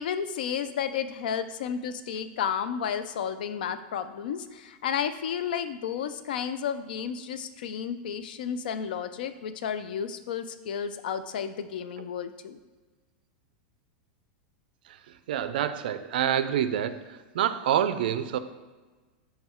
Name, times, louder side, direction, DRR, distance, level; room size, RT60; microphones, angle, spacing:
voice 1, 0.0-12.6, left 8 dB, 75° left, 11 dB, 0.3 m, -32 dB
voice 2, 14.9-18.4, right 10 dB, 75° right, 11 dB, 0.3 m, -27 dB
5.5 x 2.2 x 4.3 m, 1.3 s
supercardioid pair, 180°, 5 cm